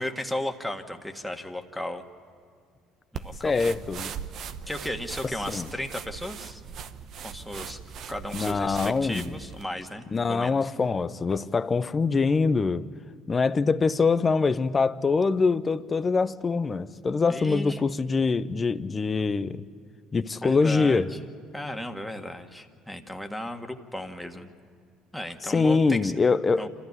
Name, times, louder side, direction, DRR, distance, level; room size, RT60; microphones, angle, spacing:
voice 1, 0.0-2.0 3.1-3.7 4.7-6.6 7.2-7.8 8.1-10.7 17.3-17.8 20.4-21.0 21.5-24.5 25.1-26.1 26.6-26.7, left 1 dB, ahead, 1.7 m, -35 dB
sound 1, 3.2-9.7, right 7 dB, 60° right, 0.9 m, -40 dB
voice 2, 3.4-4.1 5.5-5.7 8.3-9.3 10.1-12.9 13.3-19.7 20.1-21.1 25.4-26.7, left 4 dB, 30° left, 0.7 m, -24 dB
26.5 x 14.5 x 9.6 m
supercardioid pair, 85°, 0 cm